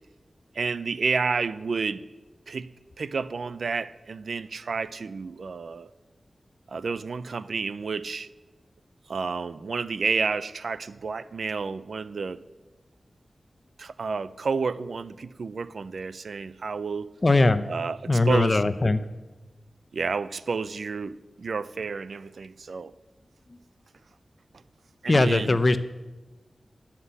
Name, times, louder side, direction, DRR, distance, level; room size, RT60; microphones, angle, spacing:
voice 1, 0.5-2.0 2.5-2.7 3.0-5.9 6.7-8.3 9.1-12.4 13.8-17.1 17.7-18.6 19.9-22.9 25.0-25.6, right 4 dB, 75° right, 0.4 m, -30 dB
voice 2, 17.2-17.6 18.1-19.0 25.1-25.8, left 2 dB, 40° left, 0.6 m, -20 dB
11.0 x 5.8 x 8.2 m
wide cardioid pair, 75°, 0 cm